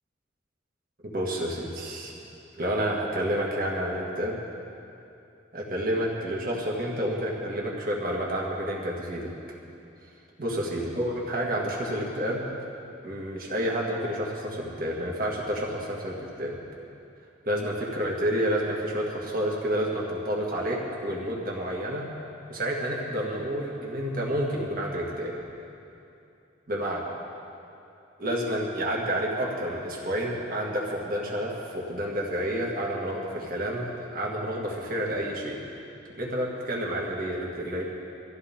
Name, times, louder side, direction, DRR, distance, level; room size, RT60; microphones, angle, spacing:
voice 1, 1.0-2.1 2.5-4.4 5.5-9.3 10.4-12.5 13.0-16.5 17.4-22.1 22.5-25.4 26.7-27.0 28.2-35.6 36.2-37.8, equal, 45° right, -3 dB, 2.1 m, -29 dB
23.5 x 14.5 x 3.7 m, 2.7 s
head